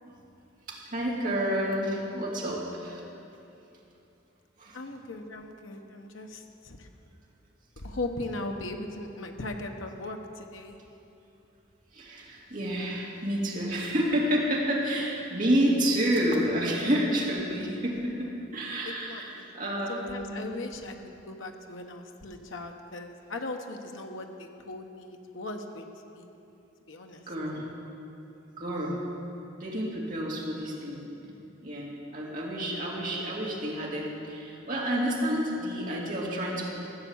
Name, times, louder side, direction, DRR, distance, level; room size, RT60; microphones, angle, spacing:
voice 1, 0.7-3.0 4.6-4.8 11.9-20.5 27.3-27.6 28.6-29.0 29.6-31.0 31.6-36.8, equal, 40° right, -4 dB, 2.2 m, -29 dB
voice 2, 4.7-6.9 7.8-10.8 18.9-26.3 26.9-27.2, left 2 dB, 75° left, 4 dB, 1.0 m, -39 dB
15.0 x 7.2 x 7.1 m, 2.8 s
head